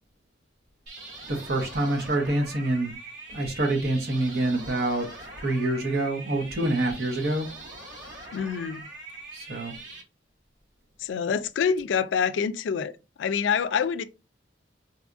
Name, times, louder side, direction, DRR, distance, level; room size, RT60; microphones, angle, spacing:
sound 1, 0.9-10.0, right 2 dB, 75° right, 1.8 m, -43 dB
voice 1, 1.3-2.9 3.3-5.1 5.4-7.5 9.3-9.7, right 1 dB, 60° right, 0.9 m, -26 dB
voice 2, 8.3-8.9 11.0-12.9 13.2-14.0, left 6 dB, 80° left, 0.3 m, -26 dB
4.2 x 2.3 x 2.5 m
head